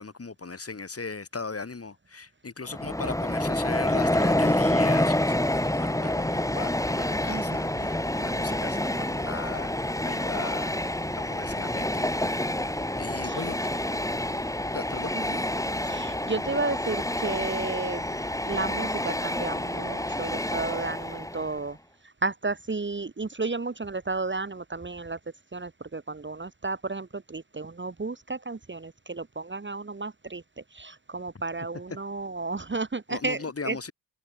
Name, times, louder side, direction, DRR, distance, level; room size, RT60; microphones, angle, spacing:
voice 1, 0.0-12.4 13.0-13.7 14.7-15.1 33.1-33.9, left 4 dB, 30° left, 6.3 m, -38 dB
Train, 2.7-21.6, left 1 dB, 5° left, 4.3 m, -28 dB
voice 2, 7.3-7.9 13.2-13.4 15.1-15.4 15.8-18.0 18.4-21.8 22.2-25.2 25.5-30.4 30.7-33.8, right 3 dB, 25° right, 2.5 m, -33 dB
cardioid pair, 100°, 43 cm